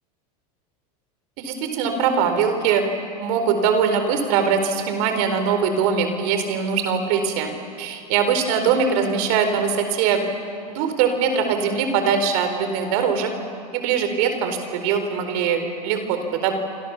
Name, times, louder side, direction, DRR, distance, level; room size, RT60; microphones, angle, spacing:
voice 1, 1.4-2.8 3.2-7.5 7.8-10.2 10.7-13.3 13.7-16.5, right 6 dB, 65° right, 7 dB, 4.2 m, -22 dB
27.0 x 26.5 x 7.2 m, 2.4 s
hypercardioid pair, 110°, 20 cm